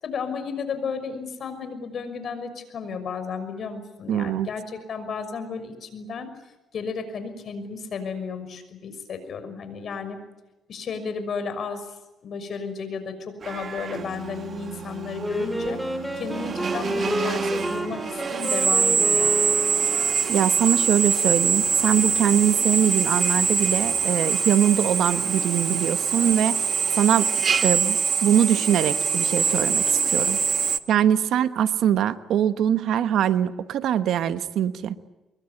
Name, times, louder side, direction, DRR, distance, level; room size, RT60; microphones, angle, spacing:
voice 1, 0.0-10.2 10.7-19.3, left 5 dB, 60° left, 10 dB, 5.9 m, -33 dB
voice 2, 4.1-4.5 20.3-26.6 27.0-27.3 27.6-30.4 30.9-35.0, right 10 dB, 80° right, 11 dB, 1.3 m, -22 dB
Drill, 13.4-30.8, right 6 dB, 45° right, 1.3 m, -24 dB
Wind instrument woodwind instrument, 15.2-20.4, equal, ahead, 4.8 m, -29 dB
24.5 x 23.0 x 9.8 m, 1.0 s
cardioid pair, 90°, 0 cm